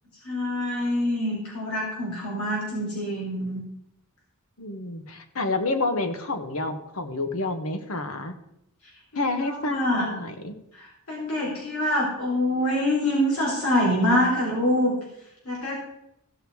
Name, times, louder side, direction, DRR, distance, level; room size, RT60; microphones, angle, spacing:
voice 1, 0.2-3.6 9.1-10.1 10.7-14.9 15.5-15.8, left 1 dB, 85° left, -3 dB, 3.5 m, -25 dB
voice 2, 4.6-8.3 9.2-10.5, left 2 dB, 70° left, 7 dB, 1.3 m, -29 dB
15.5 x 7.1 x 4.7 m, 0.80 s
head